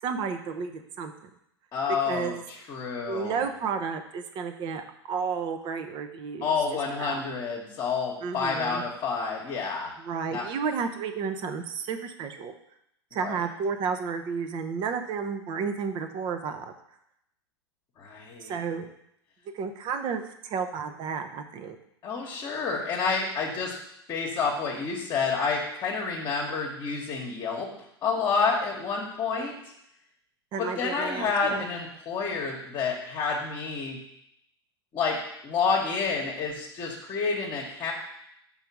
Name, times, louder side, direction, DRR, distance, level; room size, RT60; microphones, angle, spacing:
voice 1, 0.0-1.3 2.0-2.4 3.1-6.5 7.0-7.2 8.2-8.8 10.0-12.5 13.1-16.7 18.4-18.9 19.5-21.8 29.3-29.5 30.5-31.7, right 6 dB, 35° right, 7 dB, 0.8 m, -32 dB
voice 2, 1.7-3.4 6.4-9.9 10.3-10.4 13.1-13.4 18.0-18.6 22.0-23.7 24.1-27.7 28.0-29.5 30.6-34.0 34.9-35.2 35.4-37.9, left 5 dB, 30° left, -1 dB, 1.2 m, -29 dB
5.6 x 4.0 x 6.0 m, 0.77 s
figure-of-eight pair, 90°, 14 cm